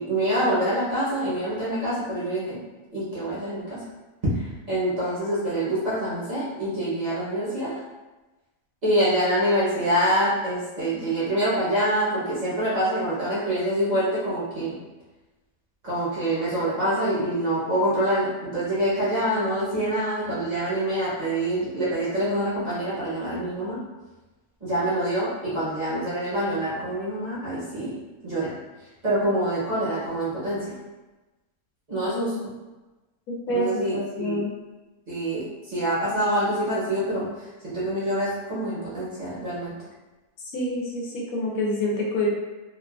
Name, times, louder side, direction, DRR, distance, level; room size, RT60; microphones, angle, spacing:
voice 1, 0.0-2.6 2.9-3.8 4.3-7.8 8.8-14.8 15.8-23.8 24.6-27.9 28.2-28.5 29.0-30.7 31.9-32.5 33.5-34.4 35.1-39.7, right 1 dB, 35° right, -10 dB, 0.8 m, -26 dB
voice 2, 33.3-34.5 40.5-42.3, left 1 dB, 75° left, -2 dB, 1.1 m, -27 dB
2.9 x 2.3 x 2.3 m, 1.1 s
omnidirectional pair, 1.5 m